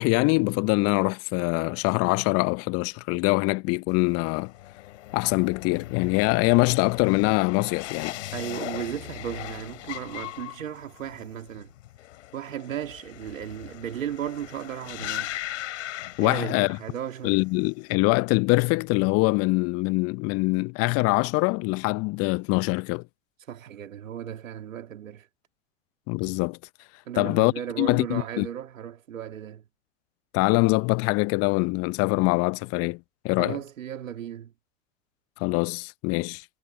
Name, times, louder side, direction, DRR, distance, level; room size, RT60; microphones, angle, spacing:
voice 1, 0.0-4.5 5.1-8.1 16.2-16.8 17.2-23.0 26.1-26.6 27.2-28.5 30.3-33.0 33.2-33.6 35.4-36.4, left 26 dB, 35° left, 0.7 m, -24 dB
sound 1, 3.9-17.0 17.3-17.8, left 15 dB, 65° left, 3.2 m, -39 dB
voice 2, 8.3-11.7 12.3-15.3 16.2-17.4 23.5-25.3 27.1-29.6 33.4-34.5, right 10 dB, 75° right, 2.3 m, -35 dB
hypercardioid pair, 95°, 39 cm